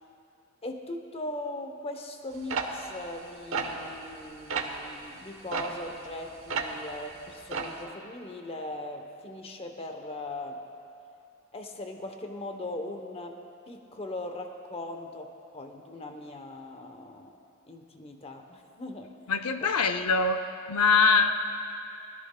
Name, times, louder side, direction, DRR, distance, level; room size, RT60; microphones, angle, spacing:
voice 1, 0.6-10.6 11.5-13.4 13.7-17.4 17.7-19.1 19.6-19.7, left 1 dB, 25° left, 4 dB, 0.8 m, -39 dB
sound 1, 2.5-4.2 4.5-4.8 5.5-6.9 7.2-7.8, right 5 dB, 60° right, 1.0 m, -32 dB
voice 2, 19.3-20.4 20.7-21.5, left 4 dB, 85° left, 8 dB, 0.5 m, -23 dB
21.0 x 14.0 x 2.2 m, 2.6 s
head